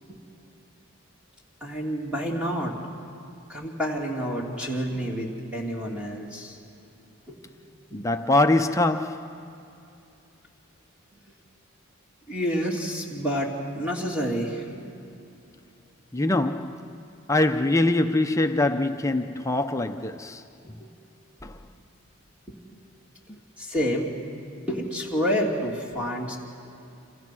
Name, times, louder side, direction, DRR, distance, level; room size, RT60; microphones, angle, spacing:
voice 1, 1.6-2.8 3.5-6.6 7.3-7.5 7.9-8.0 12.3-14.9 20.6-20.9 22.5-22.6 23.6-24.1 24.7-26.4, equal, 5° right, 2.9 m, -29 dB
voice 2, 7.9-9.4 16.1-17.0 17.3-20.4 21.4-21.6, left 2 dB, 15° left, 0.6 m, -23 dB
28.5 x 27.0 x 6.1 m
head